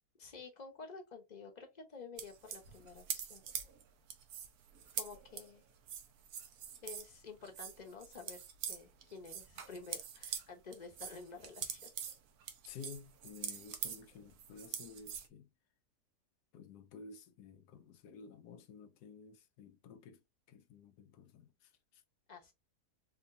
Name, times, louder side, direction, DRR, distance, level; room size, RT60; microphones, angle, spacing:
voice 1, 0.1-3.4 4.9-5.6 6.8-11.9 22.3-22.5, left 4 dB, 35° left, 0.8 m, -51 dB
sound 1, 2.2-7.2 7.4-10.5 10.7-15.3, right 8 dB, 70° right, 1.1 m, -44 dB
voice 2, 12.6-15.5 16.5-20.2 20.5-22.0, left 5 dB, 85° left, 1.2 m, -53 dB
4.3 x 2.8 x 2.6 m
omnidirectional pair, 1.7 m